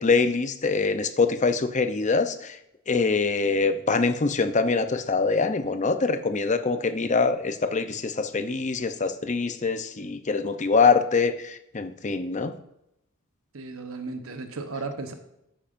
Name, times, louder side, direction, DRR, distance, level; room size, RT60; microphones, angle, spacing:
voice 1, 0.0-2.6 2.9-12.5, left 4 dB, 35° left, 9 dB, 0.7 m, -24 dB
voice 2, 13.5-15.1, right 3 dB, 80° right, 6 dB, 1.0 m, -35 dB
12.5 x 8.8 x 2.6 m, 0.82 s
head